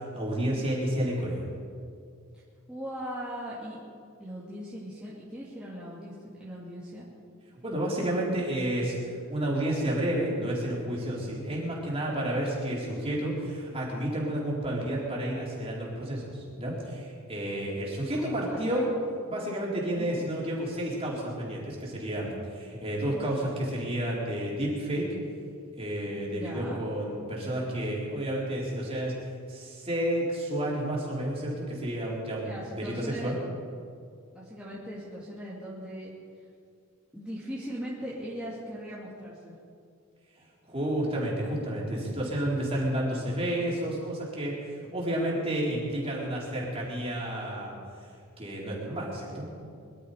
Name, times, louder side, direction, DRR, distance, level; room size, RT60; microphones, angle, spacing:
voice 1, 0.1-1.5 7.6-8.9 9.3-18.9 19.3-25.1 25.7-29.1 29.5-33.4 40.7-47.7 48.4-49.7, right 1 dB, 25° right, -4 dB, 3.9 m, -31 dB
voice 2, 2.7-3.8 4.2-6.1 6.4-7.1 18.1-18.9 19.9-20.3 26.3-26.8 32.4-33.4 34.3-36.1 37.1-39.5, equal, 5° right, -9 dB, 2.3 m, -39 dB
23.0 x 12.5 x 5.0 m, 2.3 s
head